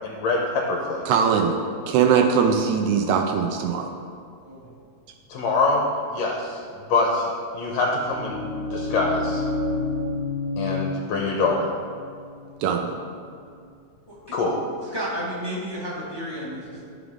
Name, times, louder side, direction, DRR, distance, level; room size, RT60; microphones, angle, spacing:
voice 1, 0.0-1.0 5.3-5.8 6.1-6.6 6.9-7.3 7.5-9.4 10.6-11.7 14.3-14.5, left 3 dB, 75° left, -1 dB, 1.9 m, -24 dB
voice 2, 1.1-1.6 1.9-3.9 12.6-12.9, right 6 dB, 80° right, 3 dB, 1.9 m, -21 dB
sound 1, 7.9-13.6, left 2 dB, 50° right, 1.6 m, -30 dB
voice 3, 14.8-16.8, equal, 15° left, -8 dB, 1.0 m, -32 dB
13.5 x 5.0 x 3.6 m, 2.2 s
omnidirectional pair, 3.4 m